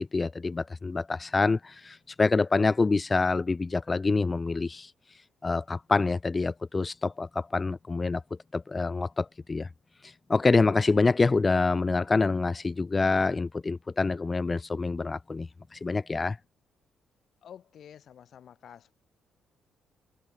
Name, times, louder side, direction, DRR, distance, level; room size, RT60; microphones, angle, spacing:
voice 1, 0.0-8.2 8.5-9.7 10.0-16.4, left 3 dB, 25° left, 0.9 m, -26 dB
voice 2, 17.4-18.9, left 9 dB, 60° left, 2.3 m, -49 dB
cardioid pair, 90°, 0 cm